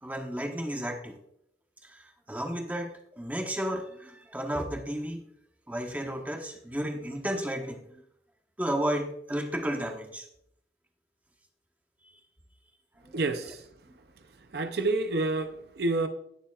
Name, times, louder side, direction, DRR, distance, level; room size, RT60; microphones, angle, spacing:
voice 1, 0.0-1.2 1.8-5.2 5.7-7.8 8.6-10.3 13.0-13.2, equal, 10° right, 3 dB, 1.0 m, -33 dB
voice 2, 13.1-13.6 14.5-16.1, right 2 dB, 60° right, 8 dB, 0.6 m, -28 dB
17.0 x 7.1 x 2.4 m, 0.74 s
head